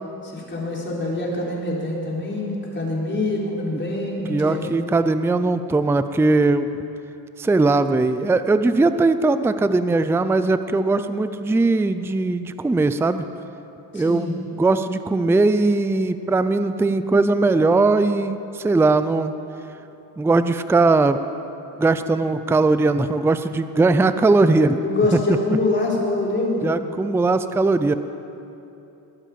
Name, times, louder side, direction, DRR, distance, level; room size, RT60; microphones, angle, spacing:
voice 1, 0.2-4.7 13.9-14.4 24.8-26.7, left 2 dB, 30° left, -4 dB, 4.1 m, -25 dB
voice 2, 4.3-6.7 7.4-13.2 13.9-19.3 20.2-21.2 21.8-24.8 25.1-25.2 26.6-27.9, right 3 dB, 5° right, 11 dB, 0.4 m, -19 dB
21.0 x 9.0 x 7.5 m, 2.8 s
cardioid pair, 120°, 40 cm